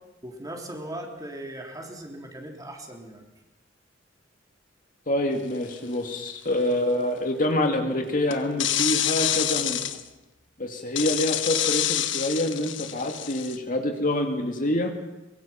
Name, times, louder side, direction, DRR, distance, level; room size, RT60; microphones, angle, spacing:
voice 1, 0.2-3.3, right 1 dB, 20° right, 1 dB, 3.5 m, -38 dB
voice 2, 5.1-9.8 10.6-14.9, left 1 dB, 45° left, 3 dB, 2.4 m, -26 dB
sound 1, 5.7-5.9 8.3-10.0 11.0-13.6, left 11 dB, 80° left, 1.2 m, -27 dB
23.5 x 22.0 x 5.9 m, 1.0 s
head